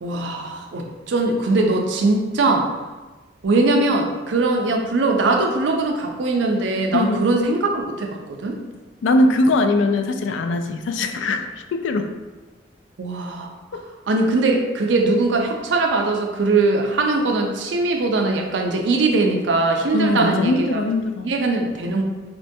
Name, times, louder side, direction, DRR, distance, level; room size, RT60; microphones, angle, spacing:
voice 1, 0.0-2.7 3.4-8.6 13.0-13.5 14.1-20.8 21.2-22.0, right 3 dB, 75° right, 2 dB, 0.4 m, -21 dB
voice 2, 6.9-7.3 9.0-12.1 13.7-13.8 19.9-21.3, left 2 dB, 85° left, 7 dB, 0.3 m, -21 dB
4.3 x 2.2 x 2.6 m, 1.2 s
head